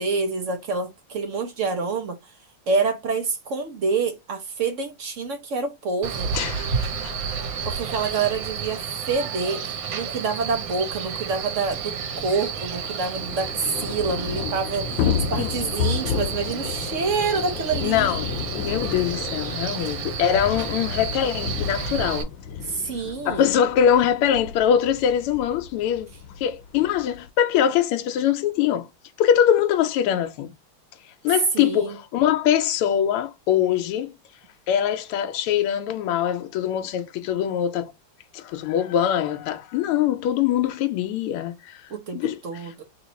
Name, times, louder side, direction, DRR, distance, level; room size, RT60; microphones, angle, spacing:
voice 1, 0.0-2.3 2.7-6.3 7.6-14.9 15.3-18.1 22.6-23.4 31.5-32.0 41.9-42.8, right 4 dB, 85° right, 0.6 m, -27 dB
Male speech man speaking, 6.0-22.2, right 6 dB, 65° right, 1.5 m, -31 dB
voice 2, 6.3-7.4 15.4-15.5 17.8-18.3 18.5-22.3 23.2-26.1 26.4-28.9 29.2-30.5 31.2-34.1 34.7-37.9 38.3-41.8 42.1-42.7, left 9 dB, 90° left, 1.5 m, -23 dB
Thunder / Rain, 10.7-10.8 11.0-11.1 11.4-27.3, left 7 dB, 70° left, 1.3 m, -32 dB
3.5 x 3.1 x 4.0 m
omnidirectional pair, 2.4 m